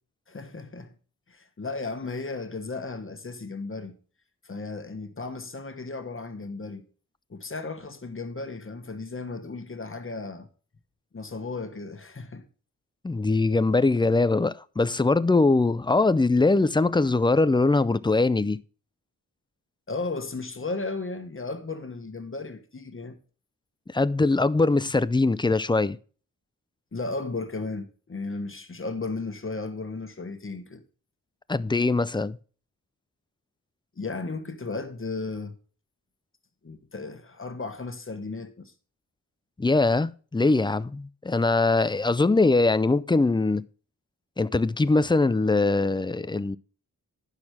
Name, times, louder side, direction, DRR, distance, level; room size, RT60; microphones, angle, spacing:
voice 1, 0.3-0.9 1.3-4.0 4.4-6.8 7.3-10.5 11.1-12.5 19.9-23.2 26.9-30.8 33.9-35.6 36.6-38.7, left 3 dB, 35° left, 1.3 m, -35 dB
voice 2, 13.0-18.6 23.9-26.0 31.5-32.4 39.6-43.6 44.4-46.6, left 3 dB, 15° left, 0.4 m, -22 dB
10.5 x 6.1 x 4.8 m
wide cardioid pair, 80°, 36 cm